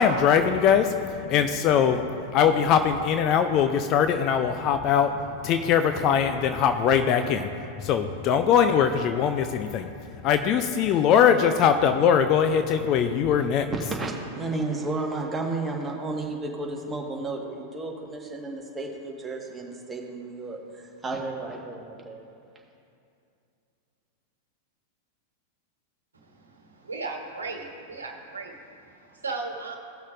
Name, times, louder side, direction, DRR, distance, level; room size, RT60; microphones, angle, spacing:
voice 1, 0.0-7.5 7.8-9.9 10.2-13.7, left 7 dB, 40° left, 8 dB, 0.5 m, -22 dB
voice 2, 13.6-22.2, right 2 dB, 15° right, -1 dB, 1.6 m, -32 dB
voice 3, 26.8-28.6 29.1-29.8, right 3 dB, 80° right, 2 dB, 1.3 m, -35 dB
17.0 x 6.2 x 2.6 m, 2.5 s
figure-of-eight pair, 90°, 0 cm